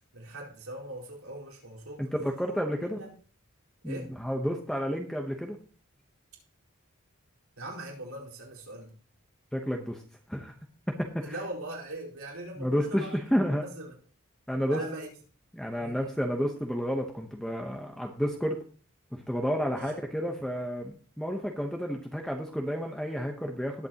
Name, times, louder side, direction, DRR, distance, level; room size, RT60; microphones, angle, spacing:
voice 1, 0.1-2.1 2.8-3.1 3.8-4.1 7.6-8.9 11.2-13.2 13.6-14.0 14.7-15.1 15.8-16.1 19.7-19.9, right 1 dB, 85° right, -3 dB, 4.3 m, -41 dB
voice 2, 2.0-3.0 3.8-5.6 9.5-10.0 10.3-10.5 10.9-11.3 12.6-13.6 14.5-14.8 15.5-18.6 19.1-23.9, equal, 5° left, 2 dB, 0.9 m, -31 dB
19.0 x 8.0 x 2.9 m, 0.42 s
head